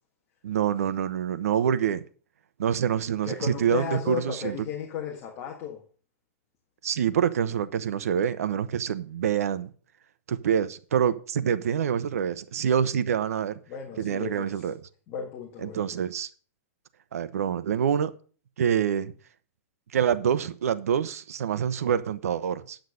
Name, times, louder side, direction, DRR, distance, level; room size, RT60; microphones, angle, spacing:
voice 1, 0.4-2.0 2.6-4.6 6.8-9.7 10.3-13.6 14.0-14.8 15.6-16.3 17.1-18.1 18.6-19.1 19.9-22.8, right 8 dB, 80° right, 1.0 m, -26 dB
voice 2, 3.2-5.8 13.7-14.7 15.1-15.8, left 8 dB, 30° left, 1.6 m, -34 dB
9.6 x 6.6 x 6.4 m
supercardioid pair, 170°, 8 cm